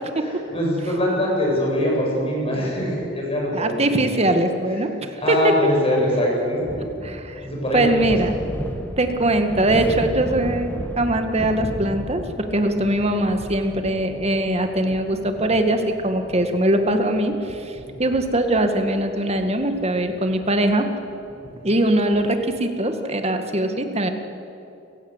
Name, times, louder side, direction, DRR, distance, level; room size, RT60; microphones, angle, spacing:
voice 1, 0.2-3.9 4.7-4.9 5.2-6.8 7.4-8.2 17.8-18.0 21.4-21.7, left 1 dB, 30° left, -2 dB, 7.8 m, -23 dB
voice 2, 3.5-4.9 5.3-5.4 7.0-7.4 7.7-8.4 9.0-12.2 12.5-20.9 21.6-24.1, right 1 dB, 35° right, 6 dB, 2.0 m, -21 dB
sound 1, 6.6-22.4, equal, 10° left, 1.8 m, -35 dB
29.5 x 17.0 x 8.2 m, 2.8 s
head